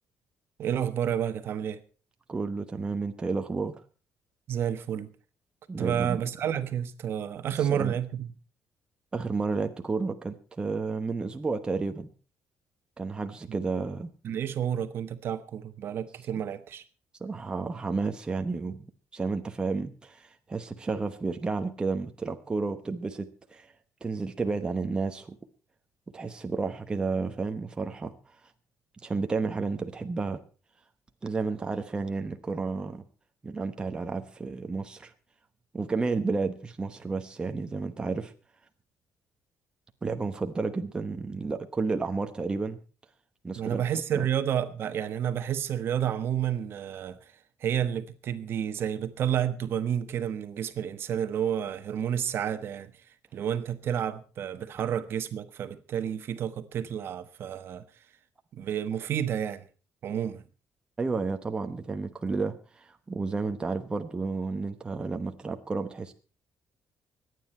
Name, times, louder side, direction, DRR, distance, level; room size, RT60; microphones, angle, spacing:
voice 1, 0.6-1.8 4.5-5.1 5.8-8.3 14.2-16.8 43.6-47.3 47.6-52.9 53.3-57.8 58.5-59.7 60.0-60.4, right 9 dB, 50° right, 1.2 m, -30 dB
voice 2, 2.3-3.7 5.7-6.2 7.7-7.9 9.1-12.1 13.0-14.1 17.2-18.8 19.1-23.7 24.0-25.4 26.1-28.1 29.0-30.4 31.2-33.0 33.4-35.1 35.7-38.3 40.0-42.8 43.4-43.8 44.1-44.3 61.0-66.1, right 4 dB, 15° right, 1.0 m, -31 dB
24.5 x 9.5 x 4.4 m
cardioid pair, 155°, 5 cm